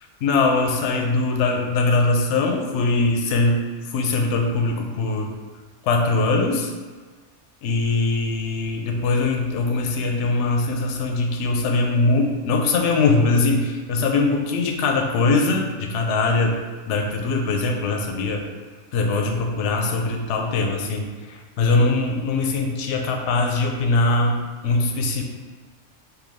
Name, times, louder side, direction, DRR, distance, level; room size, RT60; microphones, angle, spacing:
voice 1, 0.2-5.3 5.8-6.7 7.6-16.6 16.9-18.4 18.9-24.4 24.6-25.2, left 3 dB, 70° left, 2 dB, 0.8 m, -21 dB
4.6 x 2.2 x 3.4 m, 1.4 s
omnidirectional pair, 1.3 m